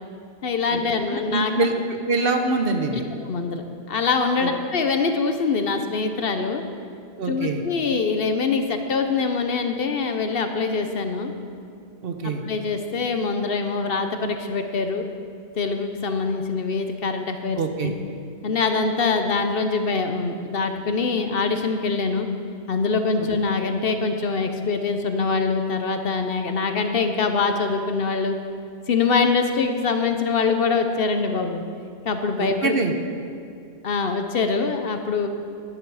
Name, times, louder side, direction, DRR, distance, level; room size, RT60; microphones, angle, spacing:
voice 1, 0.4-1.5 3.3-6.6 7.3-11.3 12.2-15.1 15.6-17.9 18.4-22.3 22.7-28.4 28.9-31.6 32.1-32.7 33.8-35.3, left 4 dB, 60° left, 6 dB, 1.0 m, -24 dB
voice 2, 1.1-3.0 4.4-4.5 7.2-7.6 12.0-12.4 17.6-17.9 32.4-32.9, right 3 dB, 60° right, 5 dB, 1.1 m, -24 dB
12.5 x 9.9 x 4.8 m, 2.3 s
omnidirectional pair, 1.1 m